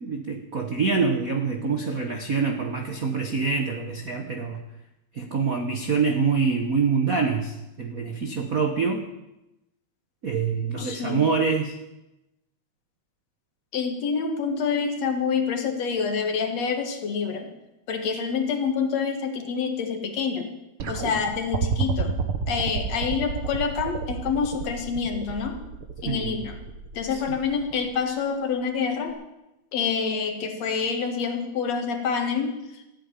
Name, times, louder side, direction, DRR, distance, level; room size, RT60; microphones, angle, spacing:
voice 1, 0.0-4.6 5.1-9.0 10.2-11.8 26.0-26.4 27.1-27.2, right 5 dB, 90° right, 4 dB, 0.7 m, -25 dB
voice 2, 10.8-11.2 13.7-17.5 17.9-20.5 20.9-22.1 22.5-25.6 26.0-26.6 26.9-29.2 29.7-32.9, left 6 dB, 60° left, 5 dB, 2.7 m, -27 dB
sound 1, 20.8-28.0 29.1-29.2, right 5 dB, 55° right, 1.8 m, -30 dB
15.0 x 9.1 x 9.8 m, 0.94 s
omnidirectional pair, 3.5 m